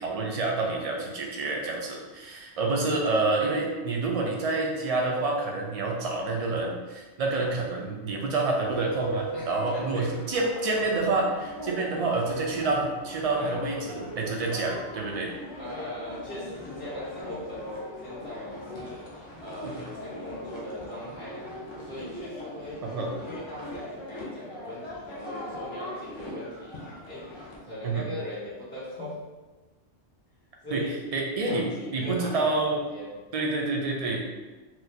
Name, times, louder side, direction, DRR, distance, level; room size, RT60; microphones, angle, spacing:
voice 1, 0.0-15.3 19.6-19.7 22.8-23.1 27.8-28.1 30.7-30.8 31.1-31.7 31.9-32.8 33.3-34.2, right 3 dB, 45° right, -1 dB, 0.5 m, -28 dB
voice 2, 2.6-3.1 9.3-10.2 11.3-11.5 13.4-13.7 15.6-19.1 19.4-22.8 23.2-26.8 27.0-27.3 27.6-29.2 30.6-32.6 32.9-33.2, left 1 dB, 80° left, -15 dB, 2.0 m, -40 dB
sound 1, 8.6-27.6, equal, 35° left, 0.6 m, -39 dB
4.4 x 2.1 x 2.7 m, 1.2 s
omnidirectional pair, 1.1 m